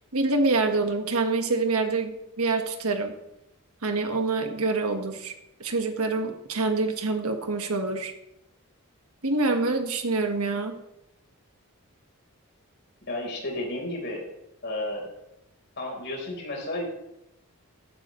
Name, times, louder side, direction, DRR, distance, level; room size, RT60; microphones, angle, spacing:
voice 1, 0.1-3.1 3.8-5.3 5.6-8.1 9.2-10.8, right 3 dB, 75° right, 5 dB, 1.6 m, -26 dB
voice 2, 13.1-14.3 14.6-15.1 15.8-16.8, left 1 dB, 50° left, -1 dB, 4.3 m, -32 dB
15.0 x 13.0 x 3.2 m, 0.87 s
head